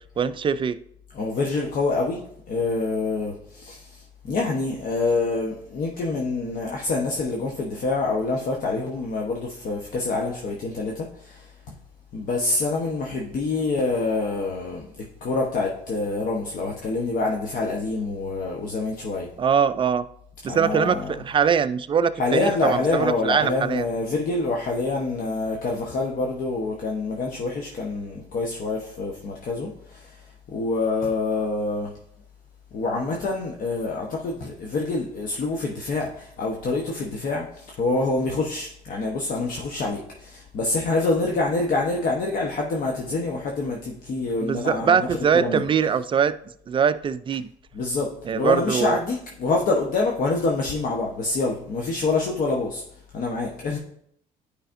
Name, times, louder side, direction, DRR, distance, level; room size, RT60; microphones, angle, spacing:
voice 1, 0.2-0.8 19.4-20.1 20.4-23.8 44.4-46.3 46.7-47.5 48.3-49.0, right 7 dB, 30° right, 13 dB, 0.3 m, -22 dB
voice 2, 1.1-11.8 12.1-19.3 20.5-21.1 22.2-31.9 32.7-45.7 47.7-53.8, left 3 dB, 55° left, 0 dB, 1.0 m, -26 dB
10.0 x 5.0 x 2.6 m, 0.69 s
cardioid pair, 110°, 17 cm